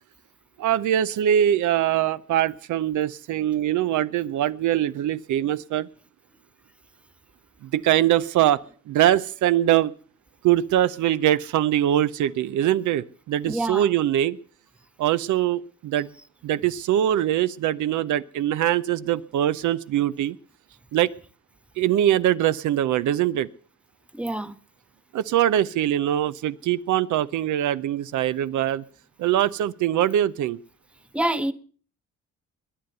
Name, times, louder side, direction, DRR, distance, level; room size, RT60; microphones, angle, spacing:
voice 1, 0.6-5.9 7.6-9.9 10.4-14.4 15.0-16.1 16.4-20.4 20.9-21.1 21.8-23.5 25.1-28.8 29.2-30.6, right 11 dB, 75° right, 0.7 m, -22 dB
voice 2, 13.4-13.9 24.1-24.6 31.1-31.5, right 1 dB, 5° right, 0.9 m, -26 dB
21.0 x 9.7 x 6.6 m
cardioid pair, 90°, 30 cm